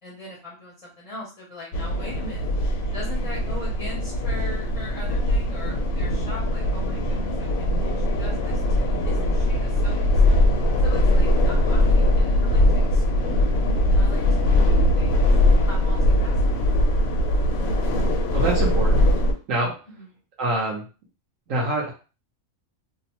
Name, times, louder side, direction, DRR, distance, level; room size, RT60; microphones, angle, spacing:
voice 1, 0.0-2.5 2.9-10.4 10.8-13.5 13.9-15.1 15.7-16.4 19.9-20.1, left 1 dB, 40° left, -3 dB, 0.5 m, -40 dB
sound 1, 1.7-19.3, left 1 dB, 90° left, 1.1 m, -21 dB
voice 2, 18.3-19.0 19.5-19.7 20.4-20.8 21.5-21.9, right 2 dB, 75° right, -2 dB, 1.1 m, -25 dB
2.8 x 2.0 x 2.8 m, 0.34 s
omnidirectional pair, 1.4 m